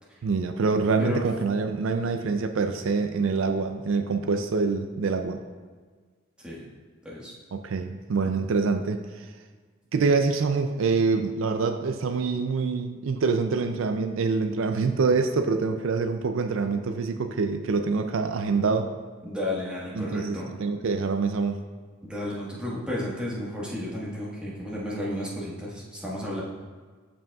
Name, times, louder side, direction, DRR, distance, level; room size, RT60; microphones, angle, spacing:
voice 1, 0.2-5.4 7.5-9.3 9.9-18.9 19.9-21.6, right 4 dB, 70° right, 7 dB, 0.4 m, -25 dB
voice 2, 19.2-20.5 22.0-26.4, left 1 dB, 5° right, -6 dB, 1.4 m, -32 dB
12.5 x 5.1 x 2.3 m, 1.5 s
head